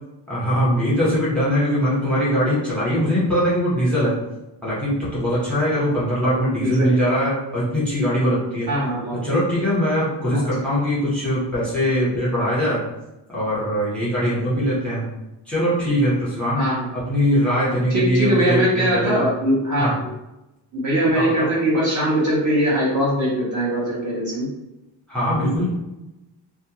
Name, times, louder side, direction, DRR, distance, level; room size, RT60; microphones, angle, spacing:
voice 1, 0.3-4.2 4.6-8.7 9.2-12.8 13.3-15.1 15.5-16.6 16.9-19.2 19.8-19.9 21.1-21.5 25.1-25.7, equal, ahead, -9 dB, 0.9 m, -21 dB
voice 2, 6.6-7.0 8.7-9.2 10.3-10.6 16.6-16.9 17.9-20.1 20.7-24.5, right 1 dB, 40° right, -7 dB, 0.7 m, -21 dB
2.4 x 2.2 x 2.9 m, 0.97 s
wide cardioid pair, 170°, 45 cm